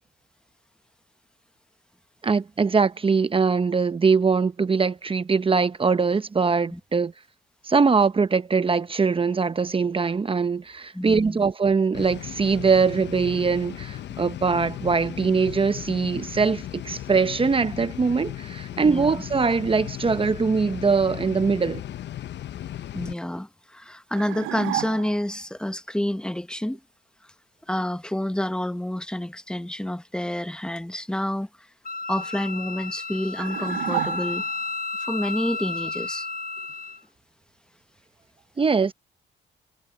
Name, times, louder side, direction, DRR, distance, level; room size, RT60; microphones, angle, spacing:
voice 1, 2.2-7.1 7.6-21.8 38.6-38.9, right 5 dB, 25° right, 0.8 m, -22 dB
voice 2, 10.9-11.5 18.8-19.2 22.9-26.8 27.7-31.5 32.1-34.4 35.0-36.3, left 1 dB, 5° left, 1.0 m, -29 dB
sound 1, 11.9-23.1, left 12 dB, 65° left, 0.8 m, -36 dB
sound 2, 24.2-25.3 33.4-34.7, right 15 dB, 90° right, 0.5 m, -31 dB
Wind instrument woodwind instrument, 31.8-37.0, left 3 dB, 45° left, 1.1 m, -32 dB
cardioid pair, 90°, 20 cm